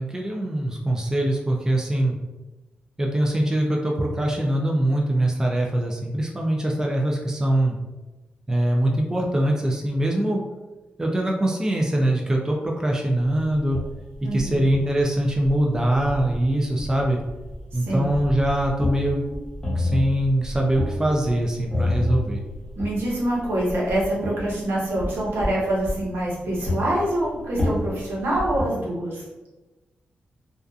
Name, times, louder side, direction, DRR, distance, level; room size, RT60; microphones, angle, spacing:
voice 1, 0.0-2.2 3.0-7.8 8.5-10.4 11.0-13.8 14.3-17.2 17.7-19.2 19.8-22.4, right 1 dB, 15° right, -1 dB, 0.4 m, -23 dB
sound 1, 13.4-28.6, left 1 dB, 10° left, 1.0 m, -30 dB
voice 2, 14.2-14.6 17.8-18.1 22.8-29.2, right 1 dB, 85° right, -5 dB, 0.9 m, -25 dB
2.5 x 2.3 x 2.3 m, 1.1 s
cardioid pair, 100°, 4 cm